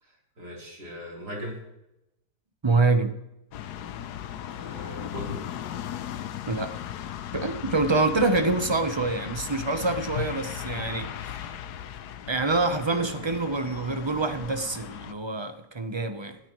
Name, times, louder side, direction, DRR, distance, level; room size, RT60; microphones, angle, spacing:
voice 1, 0.0-1.6 4.5-5.4 12.9-13.3, equal, 70° right, -2 dB, 4.4 m, -39 dB
voice 2, 2.6-3.1 6.5-6.8 7.3-11.5 12.3-16.4, right 3 dB, 25° right, 8 dB, 0.6 m, -26 dB
sound 1, 3.5-15.1, left 10 dB, 80° left, 1.3 m, -37 dB
18.0 x 13.0 x 3.1 m, 0.87 s
omnidirectional pair, 1.8 m